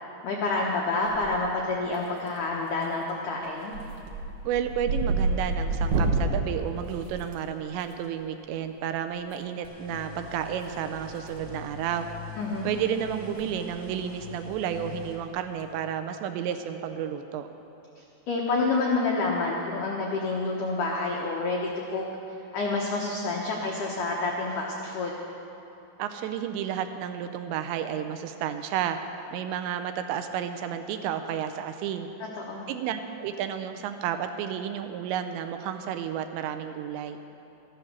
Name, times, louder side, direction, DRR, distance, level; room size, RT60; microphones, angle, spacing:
voice 1, 0.2-3.7 12.4-12.7 18.0-21.6 21.9-25.1 32.4-32.7, left 3 dB, 90° left, -2 dB, 1.8 m, -28 dB
sound 1, 1.1-1.6 1.9-2.5 2.8-3.1 3.4-7.8 9.2-9.3 10.6-11.4 11.7-11.9 12.4-12.5 12.8-12.9 13.2-13.4 13.7-13.8 15.3-15.6, right 3 dB, 65° right, 2.7 m, -29 dB
voice 2, 4.5-12.1 12.6-17.5 26.0-29.0 29.3-32.1 32.7-37.2, right 9 dB, 85° right, 8 dB, 2.8 m, -31 dB
sound 2, 9.6-15.2, left 4 dB, 35° right, 1.2 m, -43 dB
14.0 x 11.5 x 6.5 m, 2.8 s
omnidirectional pair, 5.3 m